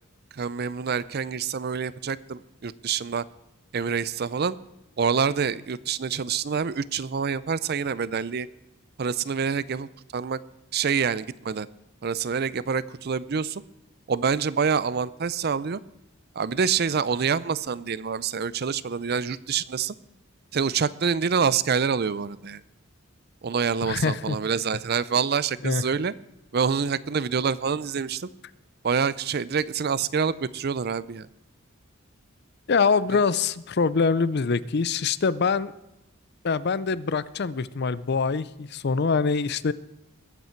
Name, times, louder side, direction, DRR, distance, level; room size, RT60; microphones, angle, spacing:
voice 1, 0.3-3.2 3.7-4.6 5.0-8.5 9.0-10.4 10.7-11.7 12.0-13.6 14.1-15.8 16.4-19.9 20.5-22.6 23.4-26.1 26.5-28.3 28.8-31.3 33.1-33.2, right 6 dB, 50° right, 18 dB, 0.5 m, -26 dB
voice 2, 23.8-24.4 25.6-25.8 32.7-35.7 36.4-39.7, left 5 dB, 50° left, 17 dB, 0.5 m, -24 dB
20.5 x 8.3 x 4.5 m, 0.91 s
head